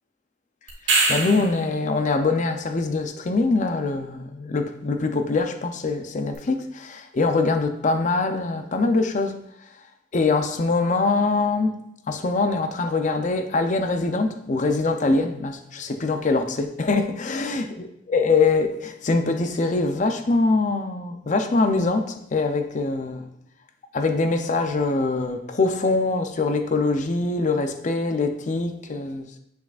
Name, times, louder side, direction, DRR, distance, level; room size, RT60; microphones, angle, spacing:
sound 1, 0.7-1.7 6.3-6.4, right 2 dB, 80° right, 1.5 m, -22 dB
voice 1, 0.9-9.4 10.1-11.7 12.1-23.3 23.9-29.4, left 3 dB, 40° left, 7 dB, 0.5 m, -23 dB
7.3 x 5.8 x 2.4 m, 0.76 s
head